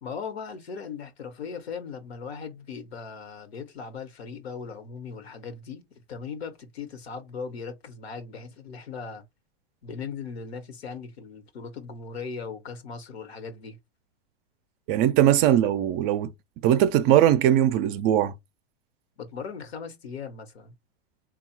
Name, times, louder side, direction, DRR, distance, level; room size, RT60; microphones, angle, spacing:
voice 1, 0.0-9.2 9.8-13.8 19.2-20.7, left 5 dB, 85° left, 1.1 m, -38 dB
voice 2, 14.9-16.3 16.6-18.3, right 11 dB, 35° right, 0.4 m, -20 dB
3.6 x 2.3 x 4.3 m
hypercardioid pair, 120°, 31 cm